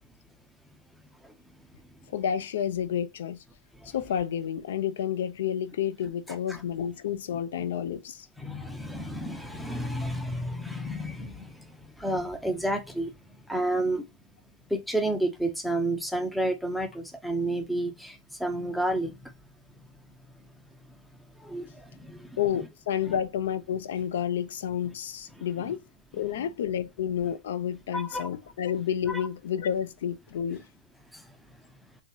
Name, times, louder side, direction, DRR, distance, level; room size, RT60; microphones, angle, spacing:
voice 1, 2.1-3.4 3.8-8.3 22.4-25.8 26.1-30.6, left 9 dB, 75° left, 0.5 m, -30 dB
voice 2, 6.3-6.6 8.4-11.6 12.0-13.1 13.5-14.0 14.7-19.1 21.4-22.4 25.4-25.7 27.9-28.3 29.1-29.2 31.1-31.2, right 1 dB, ahead, 0.5 m, -31 dB
3.0 x 2.7 x 2.2 m
supercardioid pair, 145°, 0 cm